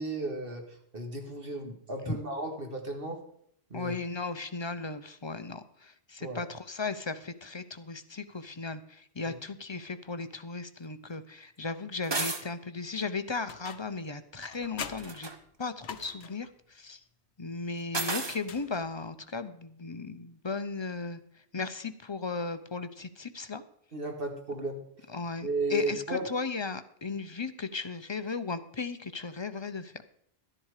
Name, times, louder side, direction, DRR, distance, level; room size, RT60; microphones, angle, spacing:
voice 1, 0.0-3.2 3.7-3.9 6.2-6.4 9.2-9.4 23.9-24.8 25.4-26.3, right 2 dB, 55° right, 3 dB, 2.0 m, -34 dB
voice 2, 3.7-15.3 15.6-17.0 17.4-21.2 21.5-23.6 25.1-29.9, left 4 dB, 30° left, 11 dB, 0.6 m, -36 dB
sound 1, 12.0-12.4 14.9-15.4 17.9-18.4, right 3 dB, 25° right, 1.0 m, -32 dB
sound 2, 13.5-14.0 14.4-16.5 18.2-19.1, left 7 dB, 75° left, 1.1 m, -44 dB
13.0 x 10.5 x 4.9 m, 0.67 s
omnidirectional pair, 1.1 m